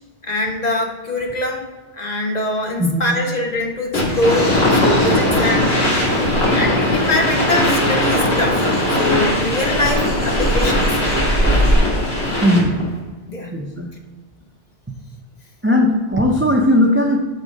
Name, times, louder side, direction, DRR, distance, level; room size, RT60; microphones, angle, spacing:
voice 1, 0.2-1.7 2.0-6.0 6.5-11.0 13.3-13.5, left 2 dB, 40° left, 2 dB, 0.8 m, -23 dB
voice 2, 2.8-3.1 12.4-12.8 13.5-13.9 15.6-17.2, left 1 dB, 20° right, 1 dB, 0.4 m, -17 dB
sound 1, 3.9-12.8, left 1 dB, 65° left, 2.1 m, -19 dB
sound 2, 4.0-11.8, right 1 dB, 10° left, 1.3 m, -25 dB
6.7 x 3.6 x 5.1 m, 1.4 s
omnidirectional pair, 1.2 m